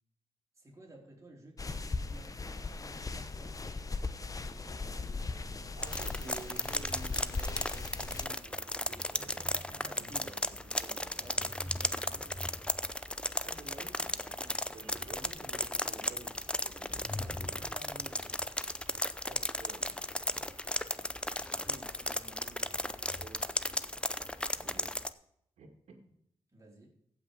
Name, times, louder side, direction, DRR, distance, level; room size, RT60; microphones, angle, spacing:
voice 1, 0.5-3.7 4.3-5.7 9.2-10.3 11.2-12.7 14.2-15.0 17.2-18.5 20.3-20.6 21.4-23.4 24.6-24.8 26.5-27.0, right 1 dB, 30° right, -1 dB, 4.1 m, -55 dB
sound 1, 1.6-8.2, left 3 dB, 35° left, 0.9 m, -39 dB
voice 2, 5.7-11.5 13.4-14.2 14.7-17.0 17.3-17.6 19.2-20.5 23.1-23.5 24.6-24.9 25.6-25.7, right 3 dB, 85° right, 4 dB, 2.1 m, -51 dB
sound 2, 5.8-25.1, left 1 dB, 10° left, 0.6 m, -35 dB
15.5 x 6.0 x 5.0 m, 0.73 s
cardioid pair, 70°, 11 cm